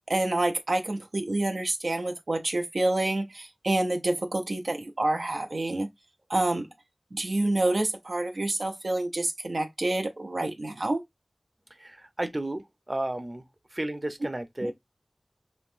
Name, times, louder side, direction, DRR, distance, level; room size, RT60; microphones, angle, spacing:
voice 1, 0.1-5.9 6.3-6.7 7.1-11.0 14.6-14.7, right 2 dB, 85° right, 0.6 m, -28 dB
voice 2, 11.8-12.6 12.9-13.4 13.7-14.7, right 1 dB, 40° right, 0.7 m, -32 dB
5.2 x 2.8 x 2.5 m
wide cardioid pair, 45°, 0 cm